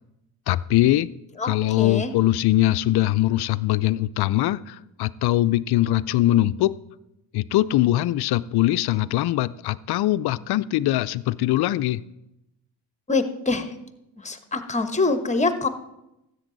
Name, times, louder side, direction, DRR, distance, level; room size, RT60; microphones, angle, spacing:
voice 1, 0.5-1.1 1.4-6.7 7.3-12.0, left 15 dB, 55° left, 17 dB, 0.5 m, -22 dB
voice 2, 1.8-2.1 13.1-13.7 14.2-15.7, left 3 dB, 15° left, 9 dB, 1.2 m, -24 dB
13.0 x 8.5 x 3.9 m, 0.89 s
supercardioid pair, 60°, 48 cm